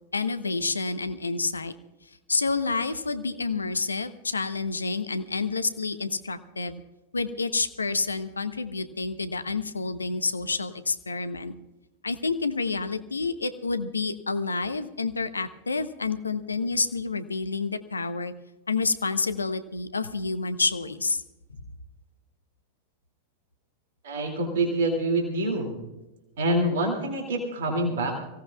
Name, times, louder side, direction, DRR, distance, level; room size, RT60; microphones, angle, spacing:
voice 1, 0.1-1.7 2.3-6.8 7.1-11.5 12.0-18.3 18.7-21.2, left 4 dB, 75° left, 12 dB, 0.8 m, -29 dB
voice 2, 24.0-25.8 26.4-28.1, right 1 dB, 60° right, 2 dB, 2.5 m, -26 dB
25.0 x 16.5 x 2.4 m, 1.0 s
figure-of-eight pair, 90°, 0 cm